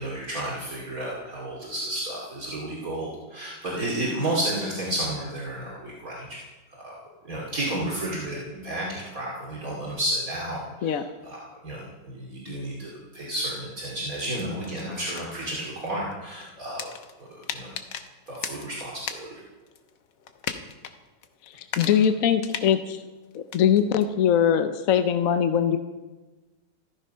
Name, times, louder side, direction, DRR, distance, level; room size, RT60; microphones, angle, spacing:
voice 1, 0.0-6.4 6.7-6.9 7.2-11.4 11.6-16.9 17.5-17.7 18.3-19.4 21.8-22.0, right 1 dB, 50° right, -4 dB, 3.0 m, -32 dB
sound 1, 14.3-19.4 19.7-20.9 21.2-24.0, left 8 dB, 85° left, 1.7 m, -39 dB
voice 2, 21.5-23.0 23.3-25.8, left 8 dB, 60° left, 9 dB, 1.0 m, -22 dB
14.5 x 14.0 x 5.6 m, 1.2 s
omnidirectional pair, 1.9 m